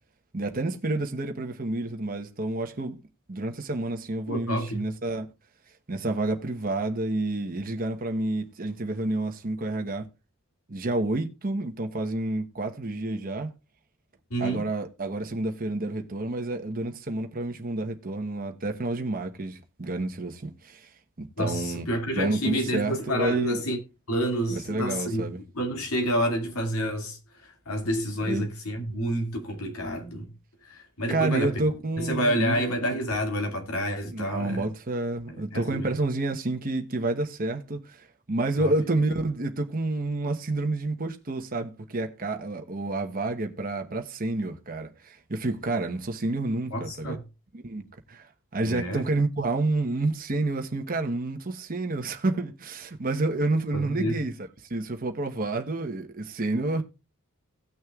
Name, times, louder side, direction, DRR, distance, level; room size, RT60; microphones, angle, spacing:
voice 1, 0.3-3.0 3.3-5.3 5.9-10.1 10.7-13.5 14.4-20.9 21.2-21.9 22.1-23.6 24.5-25.4 28.2-28.5 31.1-32.7 34.1-47.2 47.6-48.3 48.5-54.3 54.7-56.8, right 2 dB, 40° right, 1.1 m, -29 dB
voice 2, 4.3-4.9 14.3-14.6 21.4-23.8 24.1-25.2 25.5-30.3 30.6-31.6 32.0-34.7 35.3-35.9 38.6-38.7 46.7-47.2 48.6-49.1 53.7-54.2, equal, 85° left, 2.4 m, -29 dB
17.5 x 6.3 x 2.4 m
head